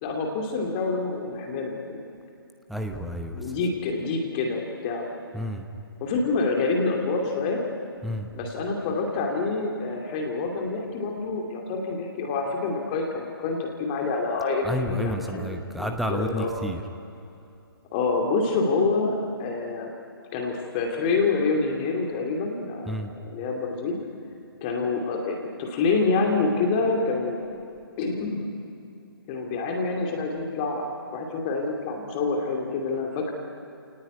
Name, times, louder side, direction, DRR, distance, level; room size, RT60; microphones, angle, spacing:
voice 1, 0.0-2.0 3.4-5.1 6.0-7.6 8.3-16.5 17.9-19.9 20.3-24.0 24.6-27.4 28.0-28.5 29.3-30.9 31.1-33.3, left 3 dB, 20° left, 1 dB, 2.6 m, -27 dB
voice 2, 2.7-3.4 5.3-5.7 8.0-8.3 14.6-16.8 22.9-23.1, equal, ahead, 5 dB, 0.9 m, -30 dB
28.0 x 18.5 x 9.3 m, 2.6 s
figure-of-eight pair, 140°, 13 cm